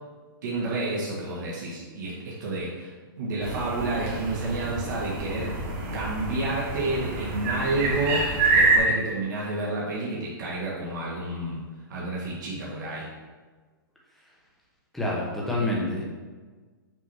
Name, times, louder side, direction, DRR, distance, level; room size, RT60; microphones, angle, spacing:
voice 1, 0.4-2.9 3.2-5.5 5.9-11.6 11.9-13.1, right 2 dB, 55° right, -6 dB, 1.5 m, -30 dB
sound 1, 3.4-8.8, right 3 dB, 35° right, 0.9 m, -27 dB
voice 2, 14.9-16.0, left 1 dB, ahead, -5 dB, 0.9 m, -27 dB
6.1 x 2.9 x 5.5 m, 1.4 s
hypercardioid pair, 165°, 12 cm